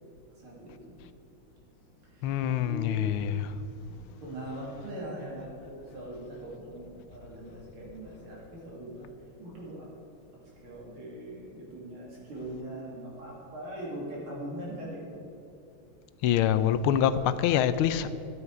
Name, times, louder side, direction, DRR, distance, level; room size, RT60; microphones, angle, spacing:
voice 1, 0.4-1.0 2.1-3.1 3.9-9.1 9.4-9.9 10.6-15.2 16.9-17.1, right 1 dB, 90° right, 3.9 m, -41 dB
voice 2, 2.2-3.5 16.2-18.1, left 10 dB, 85° left, 1.5 m, -25 dB
12.5 x 9.5 x 4.8 m
omnidirectional pair, 2.3 m